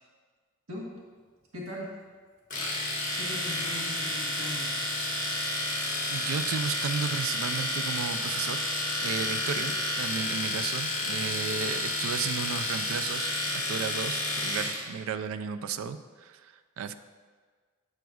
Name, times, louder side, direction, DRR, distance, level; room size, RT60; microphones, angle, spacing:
voice 1, 0.7-1.0 1.5-1.9 3.2-4.8 9.5-9.7, left 1 dB, 90° right, -3 dB, 1.2 m, -39 dB
Domestic sounds home sounds, 2.5-14.8, left 2 dB, 40° left, 1.2 m, -31 dB
voice 2, 6.1-8.6 9.0-9.7 10.0-16.9, right 6 dB, 65° right, 12 dB, 0.3 m, -34 dB
7.9 x 6.1 x 2.3 m, 1.5 s
head